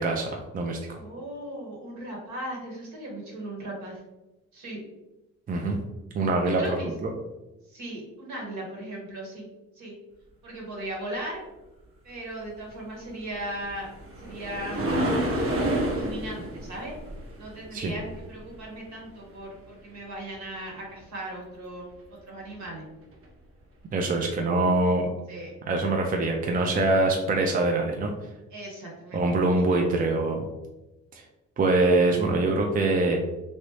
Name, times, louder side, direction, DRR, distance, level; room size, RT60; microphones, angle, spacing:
voice 1, 0.0-1.0 5.5-5.8 6.1-6.8 7.0-7.1 17.7-17.9 23.9-25.1 25.7-28.1 29.1-30.4 31.1-31.2 31.6-33.2, right 2 dB, 30° right, 2 dB, 0.4 m, -24 dB
voice 2, 0.9-4.0 4.5-4.8 6.5-6.9 7.7-9.5 9.7-9.9 10.4-11.4 12.0-13.9 14.2-15.0 15.9-16.9 17.4-22.8 25.3-25.5 28.5-29.2 29.7-29.9, right 1 dB, 65° right, -2 dB, 1.5 m, -37 dB
sound 1, 13.4-18.6 22.5-22.6 23.2-23.3, right 1 dB, 45° right, 0.9 m, -29 dB
3.1 x 2.6 x 3.2 m, 1.0 s
cardioid pair, 90°, 30 cm